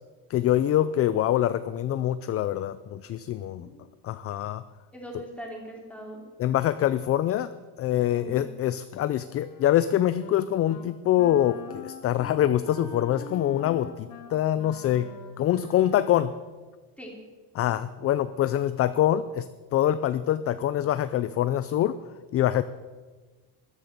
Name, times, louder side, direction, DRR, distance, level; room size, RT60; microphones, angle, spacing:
voice 1, 0.3-3.7 4.0-4.6 6.4-7.5 7.8-16.3 17.5-19.5 19.7-22.0 22.3-22.6, left 12 dB, 35° left, 14 dB, 0.4 m, -25 dB
voice 2, 4.9-6.2 8.1-8.4 17.0-17.1, equal, 5° left, -1 dB, 3.3 m, -41 dB
Wind instrument woodwind instrument, 9.2-10.4 10.7-10.9 11.2-16.5, left 5 dB, 55° left, 2.0 m, -44 dB
13.5 x 11.5 x 6.7 m, 1.4 s
cardioid pair, 155°, 41 cm